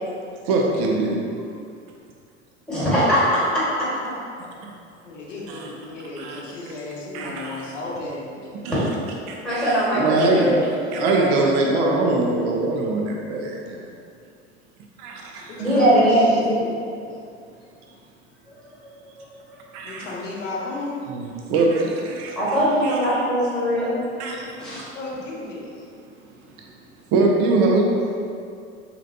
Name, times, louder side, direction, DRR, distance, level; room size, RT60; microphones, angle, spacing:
voice 1, 0.5-1.2 5.5-5.7 6.2-6.4 7.1-7.7 8.6-8.8 9.3-13.9 15.0-15.5 19.7-20.1 21.1-22.4 22.8-23.0 24.2-24.5 27.1-27.9, right 3 dB, 55° right, 0 dB, 0.6 m, -22 dB
voice 2, 2.7-3.4 8.7-8.8 9.4-10.7 10.9-11.3 11.7-12.2 15.6-16.7 18.5-18.6 19.2-19.3 22.3-24.0 24.6-24.8, equal, ahead, -10 dB, 1.5 m, -21 dB
voice 3, 5.0-8.4 15.5-16.5 19.8-21.0 24.5-25.7, left 2 dB, 80° left, -3 dB, 0.8 m, -34 dB
3.1 x 2.6 x 2.6 m, 2.3 s
hypercardioid pair, 80°, 37 cm